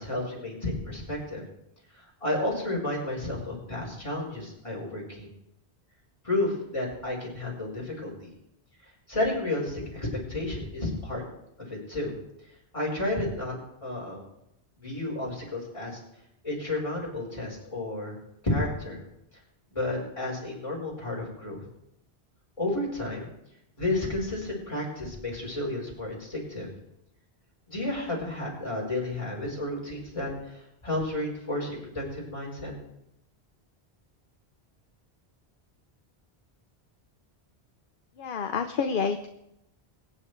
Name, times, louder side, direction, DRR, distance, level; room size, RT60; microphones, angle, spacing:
voice 1, 0.0-1.4 1.9-5.3 6.2-8.3 9.1-11.2 11.6-12.1 12.7-14.2 14.8-16.0 16.4-18.2 18.4-19.0 19.7-21.6 22.6-23.3 23.8-26.7 27.7-32.7, left 2 dB, 30° left, -3 dB, 4.3 m, -31 dB
voice 2, 38.2-39.3, left 6 dB, 55° left, 7 dB, 0.8 m, -28 dB
22.5 x 9.4 x 3.2 m, 0.82 s
omnidirectional pair, 1.1 m